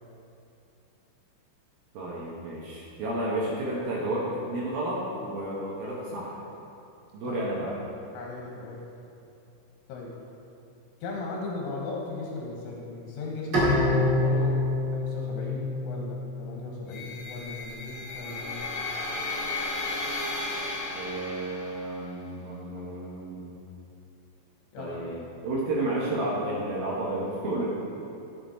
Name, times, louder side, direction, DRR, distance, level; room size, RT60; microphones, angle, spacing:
voice 1, 1.9-6.3 7.1-7.8 20.9-23.6 24.8-27.7, right 1 dB, 75° right, -5 dB, 2.1 m, -31 dB
voice 2, 8.1-8.8 9.9-10.1 11.0-14.7 14.9-18.7 24.7-25.1, left 3 dB, 80° left, -2 dB, 3.5 m, -37 dB
Bowed string instrument, 13.5-16.8, left 2 dB, 40° right, 1.8 m, -26 dB
sound 1, 16.9-21.9, left 2 dB, 55° left, 2.8 m, -34 dB
12.5 x 7.9 x 4.3 m, 2.7 s
omnidirectional pair, 5.8 m